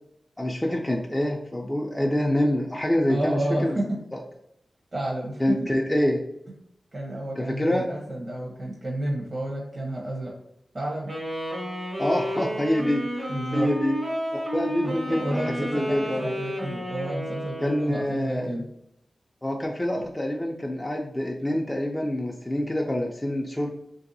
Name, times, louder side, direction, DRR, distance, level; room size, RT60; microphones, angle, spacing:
voice 1, 0.4-3.8 4.1-4.2 5.4-6.2 7.4-7.9 12.0-13.0 13.5-13.9 14.5-16.3 17.6-18.5 19.4-23.7, left 1 dB, 15° left, -1 dB, 0.3 m, -26 dB
voice 2, 3.1-3.8 4.9-5.5 6.9-10.3 10.7-11.1 13.3-13.7 14.8-18.6 19.9-20.0, right 1 dB, 50° right, -4 dB, 0.8 m, -31 dB
Wind instrument woodwind instrument, 11.1-18.0, equal, 65° right, 1.2 m, -31 dB
3.2 x 2.6 x 2.6 m, 0.78 s
wide cardioid pair, 90°, 0 cm